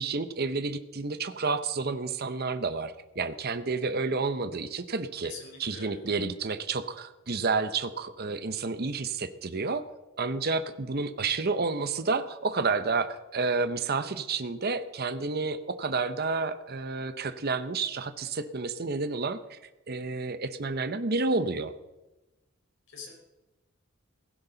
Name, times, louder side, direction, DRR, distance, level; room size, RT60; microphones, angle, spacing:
voice 1, 0.0-5.3 5.6-9.8 10.2-19.6 19.9-21.7, right 4 dB, 50° right, 10 dB, 0.8 m, -30 dB
voice 2, 5.2-6.0 22.9-23.1, left 4 dB, 65° left, 0 dB, 4.9 m, -44 dB
16.5 x 16.0 x 4.0 m, 1.0 s
head